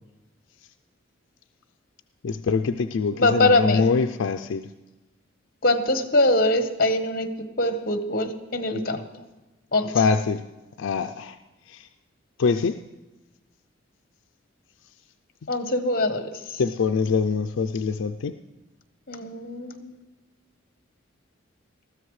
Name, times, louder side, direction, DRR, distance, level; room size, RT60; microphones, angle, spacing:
voice 1, 2.2-4.7 9.9-10.4 10.8-11.4 11.7-11.9 12.4-12.8 16.6-18.4, left 5 dB, 80° left, 7 dB, 0.4 m, -24 dB
voice 2, 3.1-3.8 5.6-7.3 7.6-9.0 9.7-10.1 15.5-16.6 19.1-20.0, left 2 dB, 45° left, 7 dB, 1.1 m, -23 dB
20.0 x 14.0 x 3.2 m, 1.1 s
head